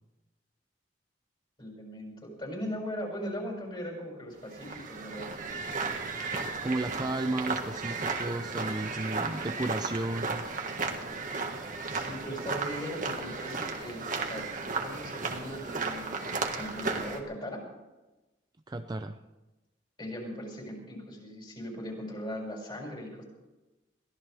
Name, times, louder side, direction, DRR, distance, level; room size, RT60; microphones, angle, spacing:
voice 1, 1.6-5.3 8.6-8.9 11.8-14.4 14.8-17.6 20.0-23.2, equal, 30° left, -2 dB, 6.0 m, -39 dB
sound 1, 4.4-17.2, right 4 dB, 50° right, 1.7 m, -34 dB
voice 2, 6.6-10.4 18.7-19.2, right 2 dB, 25° right, 7 dB, 0.5 m, -33 dB
22.5 x 16.5 x 3.5 m, 1.1 s
head